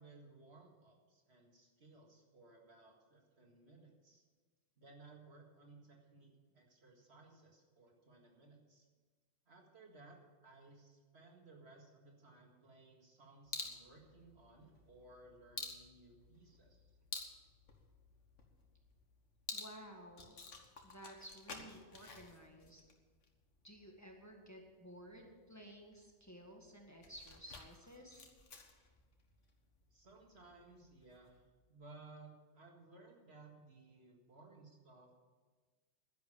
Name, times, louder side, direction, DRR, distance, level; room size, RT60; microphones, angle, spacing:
voice 1, 0.0-4.2 4.8-8.9 9.5-16.9 29.9-35.1, right 3 dB, 60° right, 0 dB, 2.2 m, -60 dB
sound 1, 13.4-31.5, left 4 dB, 85° left, 1.8 m, -53 dB
voice 2, 19.5-20.4 20.8-22.8 23.6-28.3, equal, 15° left, 1 dB, 1.8 m, -55 dB
11.5 x 10.5 x 7.1 m, 1.4 s
omnidirectional pair, 1.2 m